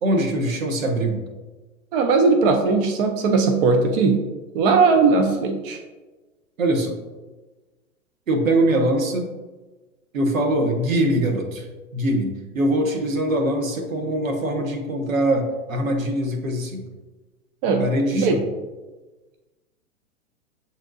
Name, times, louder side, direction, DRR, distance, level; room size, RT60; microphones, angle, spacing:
voice 1, 0.0-1.2 6.6-7.0 8.3-9.3 10.1-11.7 11.9-16.8 17.8-18.5, right 1 dB, 80° right, 3 dB, 1.0 m, -22 dB
voice 2, 1.9-4.2 4.5-5.8 17.6-17.8 18.1-18.4, right 4 dB, 45° right, 6 dB, 0.6 m, -18 dB
7.2 x 2.7 x 2.5 m, 1.2 s
hypercardioid pair, 110°, 40 cm